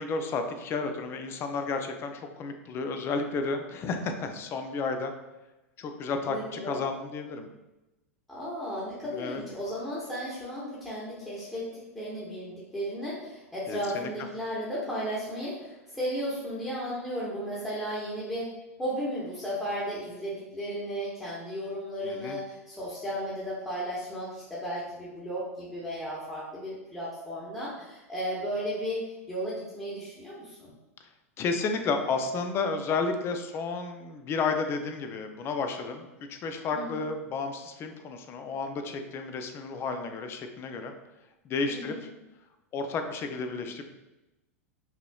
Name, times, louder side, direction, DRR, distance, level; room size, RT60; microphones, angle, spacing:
voice 1, 0.0-5.1 5.8-7.5 9.1-9.4 13.7-14.1 22.0-22.4 31.4-40.9 41.4-42.0 42.7-43.9, left 4 dB, 30° left, 6 dB, 0.5 m, -32 dB
voice 2, 6.2-6.8 8.3-18.5 18.8-29.0 29.3-30.7 36.7-37.0 41.7-42.0, equal, 10° left, -8 dB, 1.2 m, -34 dB
5.6 x 3.0 x 2.3 m, 1.0 s
figure-of-eight pair, 95°, 8 cm